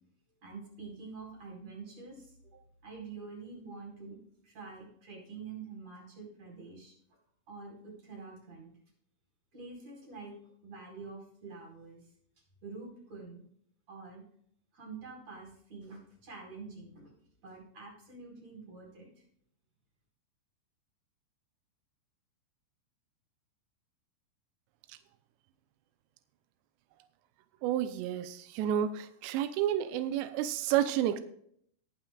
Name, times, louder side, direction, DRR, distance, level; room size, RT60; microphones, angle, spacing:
voice 1, 0.4-2.3 2.8-6.9 7.5-8.7 9.5-12.0 12.6-13.4 13.9-14.2 14.7-17.2 17.4-19.2, right 4 dB, 35° right, -1 dB, 5.5 m, -47 dB
voice 2, 27.6-31.2, right 11 dB, 90° right, 11 dB, 2.4 m, -30 dB
19.5 x 9.0 x 2.4 m, 0.67 s
omnidirectional pair, 5.8 m